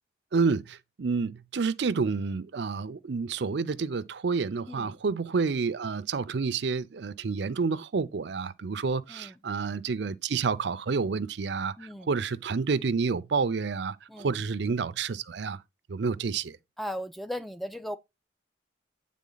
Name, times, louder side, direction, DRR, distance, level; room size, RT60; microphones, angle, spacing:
voice 1, 0.3-15.6 15.9-16.6, right 4 dB, 60° right, 0.5 m, -29 dB
voice 2, 11.8-12.1 14.1-14.3 16.8-18.0, equal, ahead, 0.4 m, -37 dB
8.4 x 3.6 x 3.9 m
head